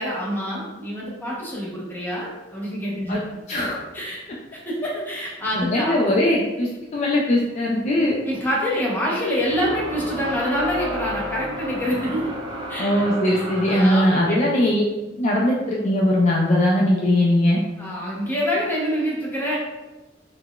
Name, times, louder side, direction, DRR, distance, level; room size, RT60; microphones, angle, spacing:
voice 1, 0.0-3.2 3.9-4.2 4.5-6.0 8.3-12.3 12.7-12.9 13.3-14.4 17.8-19.6, equal, 10° left, -5 dB, 0.7 m, -26 dB
voice 2, 5.5-8.1 12.8-14.8 15.2-17.6, left 1 dB, 40° left, -3 dB, 0.3 m, -20 dB
sound 1, 9.3-14.2, right 1 dB, 25° right, 0.5 m, -32 dB
3.8 x 2.1 x 2.2 m, 1.1 s
head